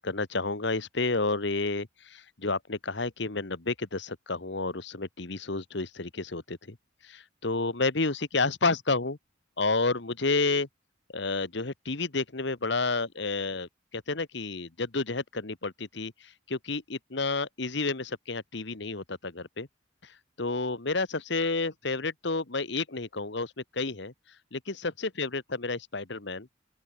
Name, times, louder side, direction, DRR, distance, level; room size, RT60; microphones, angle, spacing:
voice 1, 0.0-6.8 7.0-9.2 9.6-10.7 11.1-19.7 20.0-24.1 24.5-26.5, left 3 dB, 60° left, 1.4 m, -30 dB
open air
head